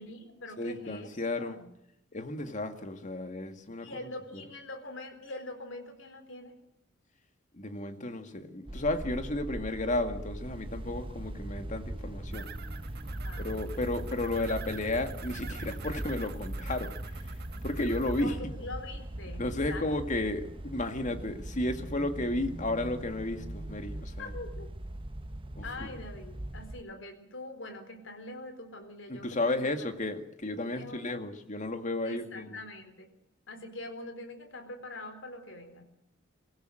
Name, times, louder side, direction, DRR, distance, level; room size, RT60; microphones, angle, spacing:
voice 1, 0.0-1.1 1.4-1.7 3.8-6.5 13.2-13.9 18.2-19.8 24.2-24.7 25.6-29.6 30.7-31.0 32.0-33.1 33.5-35.8, left 2 dB, 70° left, 4.3 m, -43 dB
voice 2, 0.6-1.6 2.1-3.9 7.5-12.5 13.4-17.3 17.6-18.3 19.4-24.3 25.6-25.9 29.1-32.6, left 2 dB, 40° left, 2.0 m, -33 dB
sound 1, 8.7-26.8, right 1 dB, 25° right, 0.9 m, -40 dB
sound 2, 12.3-18.2, right 8 dB, 55° right, 1.4 m, -47 dB
24.0 x 16.0 x 7.7 m
head